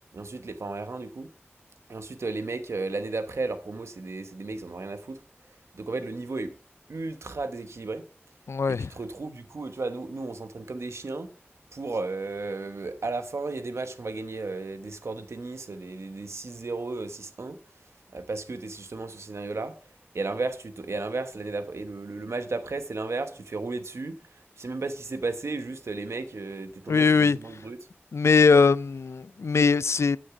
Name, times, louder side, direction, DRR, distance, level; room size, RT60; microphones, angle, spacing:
voice 1, 0.1-1.3 1.9-5.2 5.7-6.5 6.9-8.1 8.7-11.3 11.7-17.6 18.1-19.8 20.1-24.2 24.6-27.8, right 3 dB, 90° right, 1.0 m, -34 dB
voice 2, 8.5-8.9 26.9-27.4 28.1-30.2, left 4 dB, 85° left, 0.3 m, -21 dB
12.0 x 6.4 x 4.7 m
wide cardioid pair, 45°, 5 cm